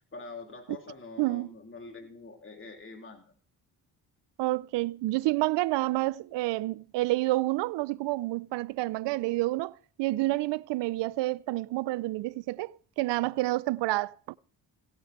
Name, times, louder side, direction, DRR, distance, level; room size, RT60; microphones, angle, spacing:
voice 1, 0.1-3.2, left 3 dB, 30° left, 3.2 m, -45 dB
voice 2, 1.2-1.5 4.4-14.4, right 19 dB, 75° right, 0.6 m, -29 dB
16.5 x 6.9 x 6.6 m
supercardioid pair, 55°, 43 cm